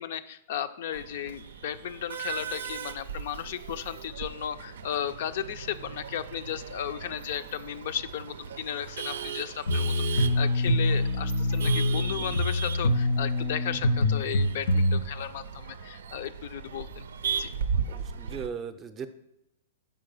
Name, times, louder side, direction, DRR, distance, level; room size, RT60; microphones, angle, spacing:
voice 1, 0.0-17.1 17.4-17.5, left 10 dB, 60° left, 11 dB, 0.4 m, -35 dB
Male speech man speaking / Laughter / Chatter, 0.9-18.5, right 6 dB, 80° right, 0.5 m, -37 dB
sound 1, 9.7-15.0, left 1 dB, 85° left, 0.9 m, -25 dB
voice 2, 17.9-19.1, right 6 dB, 20° right, 10 dB, 0.5 m, -37 dB
5.6 x 4.8 x 5.4 m, 0.85 s
hypercardioid pair, 145°, 0 cm